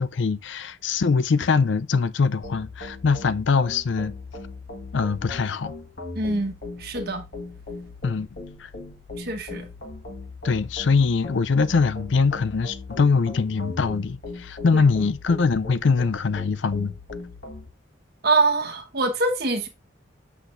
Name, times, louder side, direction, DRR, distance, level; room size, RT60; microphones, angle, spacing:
voice 1, 0.0-4.1 4.9-5.7 8.0-8.3 8.6-8.7 10.4-16.9, left 4 dB, 70° left, 0.5 m, -22 dB
sound 1, 2.4-17.7, left 3 dB, 55° left, 1.5 m, -39 dB
voice 2, 6.1-6.5 6.8-7.2 9.2-9.7 14.7-14.9 18.2-19.7, right 3 dB, 55° right, 1.3 m, -24 dB
8.1 x 5.9 x 2.5 m
head